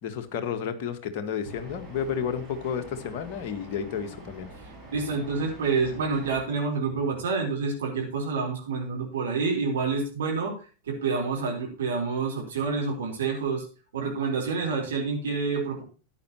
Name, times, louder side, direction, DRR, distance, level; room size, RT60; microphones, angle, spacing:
voice 1, 0.0-4.5, left 7 dB, 45° left, 6 dB, 1.6 m, -31 dB
sound 1, 1.4-6.4, right 2 dB, 15° right, 5.5 m, -45 dB
voice 2, 4.9-10.6 10.9-13.7 13.9-15.8, right 4 dB, 65° right, 0 dB, 3.8 m, -28 dB
14.0 x 9.4 x 2.9 m, 0.34 s
figure-of-eight pair, 90°, 0 cm